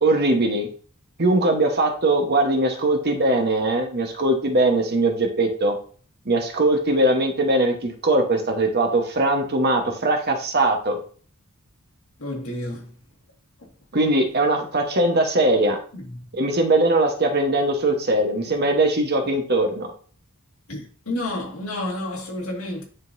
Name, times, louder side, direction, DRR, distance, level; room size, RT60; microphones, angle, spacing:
voice 1, 0.0-0.7 1.2-5.7 6.3-11.0 13.9-15.8 16.3-19.9, right 2 dB, 45° right, 1.1 m, -20 dB
voice 2, 12.2-12.9 15.9-16.2 20.7-22.8, left 1 dB, 70° left, 1.9 m, -30 dB
9.8 x 3.9 x 2.6 m
head